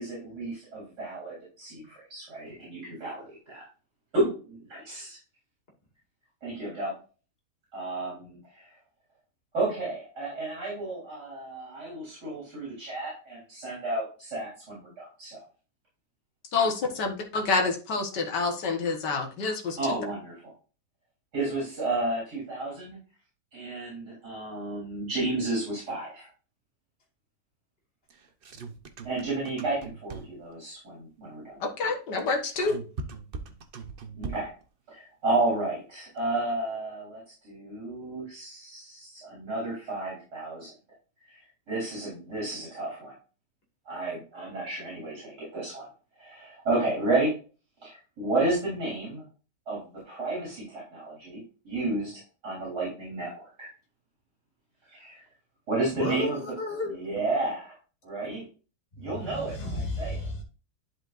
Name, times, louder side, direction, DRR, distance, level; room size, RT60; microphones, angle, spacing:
voice 1, 0.0-3.6 4.1-5.2 6.4-6.9 7.7-8.7 9.5-15.4 19.8-20.3 21.3-23.0 23.5-26.3 29.0-31.6 34.1-34.5 34.9-40.7 41.2-43.1 43.9-45.8 46.2-47.3 47.8-49.2 49.7-52.1 52.4-53.7 54.9-55.2 55.7-56.4 56.8-57.7 58.0-58.4 59.0-60.2, right 2 dB, 70° right, 4.2 m, -32 dB
voice 2, 16.5-20.0 31.6-32.8, left 4 dB, 75° left, 2.0 m, -28 dB
sound 1, 28.1-30.5 32.2-34.6, right 4 dB, 45° right, 0.7 m, -40 dB
voice 3, 55.9-56.9 59.0-60.4, left 2 dB, 35° left, 2.5 m, -32 dB
11.5 x 4.9 x 2.5 m
omnidirectional pair, 1.9 m